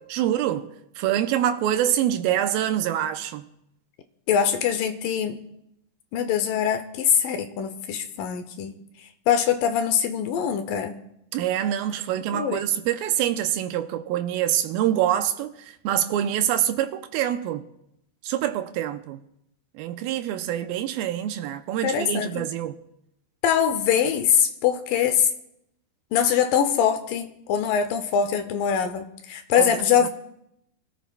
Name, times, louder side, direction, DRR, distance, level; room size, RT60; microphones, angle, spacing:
voice 1, 0.1-0.7 1.0-3.4 11.3-15.5 15.8-17.6 18.2-19.2 19.8-22.8 29.6-29.7, right 11 dB, 80° right, 2.3 m, -25 dB
voice 2, 4.3-5.4 6.1-8.7 9.3-11.0 12.3-12.6 21.8-22.5 23.4-25.3 26.1-30.1, left 8 dB, 75° left, 2.1 m, -23 dB
24.0 x 13.0 x 2.3 m
omnidirectional pair, 4.6 m